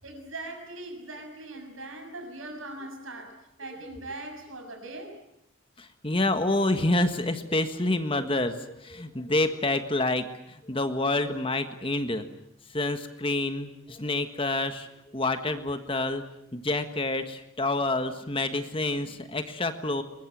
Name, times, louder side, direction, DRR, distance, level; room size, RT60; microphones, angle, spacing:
voice 1, 0.0-5.2, right 2 dB, 75° right, 4 dB, 6.8 m, -40 dB
voice 2, 5.8-10.2 10.7-12.2 12.7-14.9 15.1-16.2 16.5-20.0, left 2 dB, 25° left, 8 dB, 1.5 m, -28 dB
22.5 x 22.0 x 9.3 m, 0.78 s
head